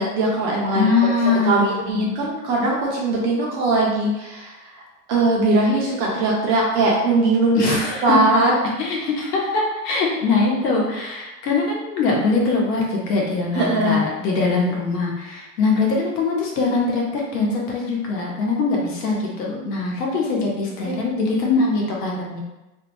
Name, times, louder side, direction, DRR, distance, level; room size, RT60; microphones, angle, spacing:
voice 1, 0.0-0.9 1.4-4.5 5.1-7.7 8.0-8.6 13.5-14.0 20.8-21.0, right 2 dB, 35° right, -3 dB, 0.4 m, -20 dB
voice 2, 0.7-2.1 7.5-8.2 8.8-22.4, left 3 dB, 75° left, -2 dB, 1.0 m, -22 dB
2.6 x 2.1 x 3.0 m, 1.0 s
supercardioid pair, 140°, 49 cm